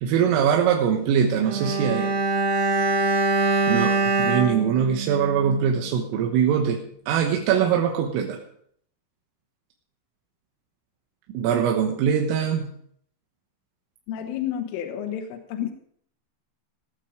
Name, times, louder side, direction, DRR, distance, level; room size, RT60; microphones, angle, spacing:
voice 1, 0.0-2.1 3.7-8.4 11.4-12.7, right 8 dB, 90° right, 2 dB, 3.9 m, -22 dB
Bowed string instrument, 1.4-5.9 6.1-6.3, right 3 dB, 55° right, 3.1 m, -24 dB
voice 2, 14.1-15.7, left 10 dB, 80° left, 4 dB, 3.6 m, -30 dB
17.0 x 9.1 x 5.1 m, 0.64 s
omnidirectional pair, 5.7 m